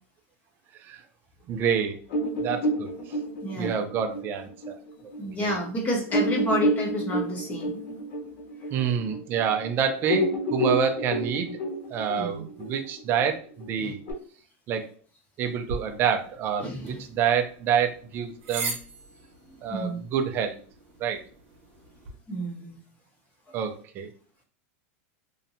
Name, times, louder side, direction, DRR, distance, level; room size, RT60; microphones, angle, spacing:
voice 1, 1.5-2.0 2.4-2.9 3.6-4.8 5.4-5.6 8.7-11.5 11.9-14.0 14.7-14.9 15.4-18.8 19.6-20.6 21.0-21.2 23.5-24.1, right 7 dB, 30° right, 6 dB, 0.3 m, -27 dB
sound 1, 2.1-5.2 5.6-5.7 6.1-9.7 10.0-14.1, equal, 50° left, 0.9 m, -29 dB
voice 2, 3.4-3.7 5.2-8.0 12.2-12.5 13.8-13.9 16.6-17.0 19.5-20.0 22.3-22.8 23.5-23.6, equal, 20° left, 0 dB, 0.7 m, -30 dB
sound 2, 15.7-22.1, right 3 dB, 60° right, 0.8 m, -40 dB
2.7 x 2.1 x 2.6 m, 0.43 s
supercardioid pair, 155°, 8 cm